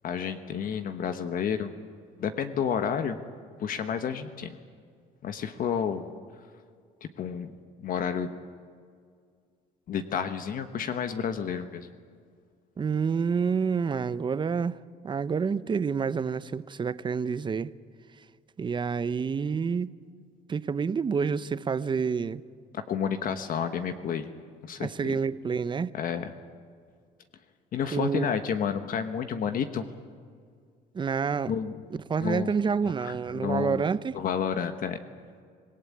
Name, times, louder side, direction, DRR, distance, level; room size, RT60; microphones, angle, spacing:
voice 1, 0.0-1.7 2.2-3.2 3.6-4.6 5.2-6.1 7.2-7.5 7.8-8.3 9.9-11.9 22.7-24.3 24.6-25.1 25.9-26.3 27.7-29.8 31.5-31.8 32.2-32.5 33.0-33.9 34.1-35.0, left 7 dB, 55° left, 1.2 m, -30 dB
voice 2, 12.8-14.8 15.0-17.7 18.6-19.9 20.5-22.4 24.8-25.9 27.9-28.3 30.9-31.5 32.1-34.2, right 6 dB, 30° right, 0.7 m, -28 dB
26.0 x 18.0 x 8.5 m
cardioid pair, 110°, 17 cm